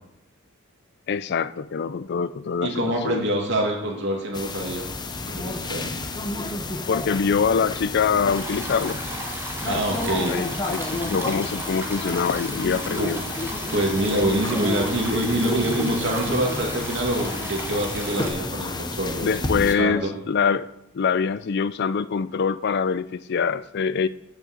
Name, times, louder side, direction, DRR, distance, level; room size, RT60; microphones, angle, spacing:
voice 1, 1.1-3.2 6.9-9.0 10.3-13.2 19.2-20.7 20.9-24.1, left 6 dB, 55° left, 0.4 m, -24 dB
voice 2, 2.6-4.9 5.3-5.9 9.6-10.4 13.0-13.1 13.7-20.1, right 1 dB, 60° right, 2.5 m, -25 dB
sound 1, 4.3-19.7, left 2 dB, 20° left, 0.8 m, -31 dB
Stream, 8.3-18.3, right 2 dB, 10° right, 1.6 m, -36 dB
8.9 x 6.4 x 8.0 m
head